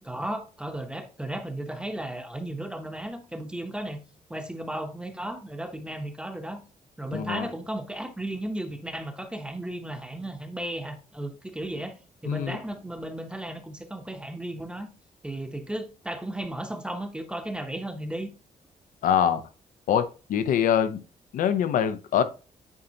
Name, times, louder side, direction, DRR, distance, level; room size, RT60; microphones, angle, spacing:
voice 1, 0.0-4.0 4.3-6.6 7.0-11.9 12.2-14.9 15.2-18.3, right 1 dB, 5° right, 0.8 m, -35 dB
voice 2, 7.1-7.5 12.3-12.6 19.0-19.4 19.9-21.0 21.3-22.2, left 9 dB, 85° left, 0.7 m, -24 dB
9.1 x 4.0 x 2.8 m
cardioid pair, 130°, 14 cm